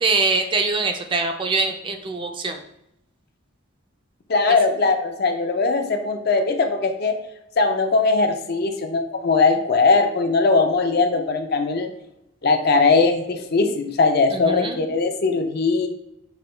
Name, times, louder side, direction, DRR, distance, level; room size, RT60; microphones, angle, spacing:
voice 1, 0.0-2.6 14.4-14.8, right 3 dB, 25° right, 5 dB, 0.4 m, -23 dB
voice 2, 4.3-7.2 7.6-11.9 12.4-15.9, left 3 dB, 50° left, 6 dB, 0.5 m, -20 dB
5.9 x 2.2 x 3.2 m, 0.83 s
head